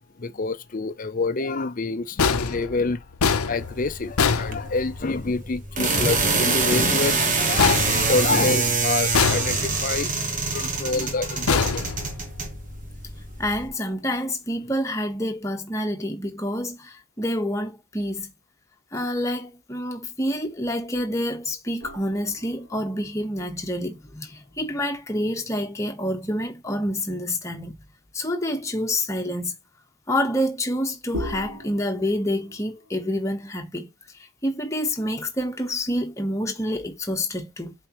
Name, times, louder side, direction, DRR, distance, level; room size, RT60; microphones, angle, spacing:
voice 1, 0.2-3.0 3.5-11.8, left 3 dB, 40° left, 0.5 m, -27 dB
sound 1, 2.2-5.2 7.6-8.7 9.1-10.0 11.5-12.6, left 5 dB, 85° left, 0.7 m, -25 dB
sound 2, 3.6-13.7, right 4 dB, 35° right, 1.3 m, -26 dB
voice 2, 13.4-18.3 18.9-27.8 28.1-29.6 30.1-33.9 34.4-37.7, left 1 dB, 15° left, 1.1 m, -27 dB
sound 3, 21.8-25.3 25.6-25.7 31.1-33.5, equal, 80° right, 2.9 m, -39 dB
7.8 x 4.5 x 3.0 m
head